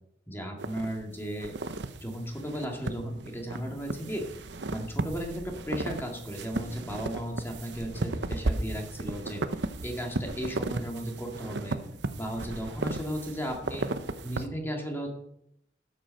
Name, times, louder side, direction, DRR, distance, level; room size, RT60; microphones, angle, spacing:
voice 1, 0.3-1.6 2.0-4.3 4.7-9.4 9.8-11.8 12.2-13.9 14.2-15.1, equal, 15° left, 1 dB, 2.2 m, -35 dB
sound 1, 0.6-14.5, right 2 dB, 75° right, 0.8 m, -35 dB
12.0 x 8.2 x 6.5 m, 0.77 s
head